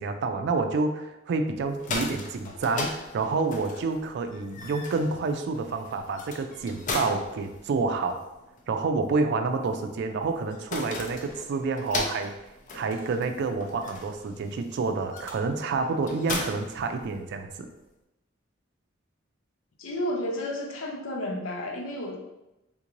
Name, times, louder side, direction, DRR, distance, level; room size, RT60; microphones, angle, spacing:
voice 1, 0.0-8.3 8.7-12.3 12.7-17.7, right 4 dB, 60° right, 7 dB, 0.3 m, -28 dB
sound 1, 1.6-17.5, left 3 dB, 40° left, 0.4 m, -38 dB
voice 2, 19.8-22.2, left 1 dB, 85° left, 2 dB, 0.6 m, -31 dB
3.6 x 2.5 x 3.0 m, 0.94 s
head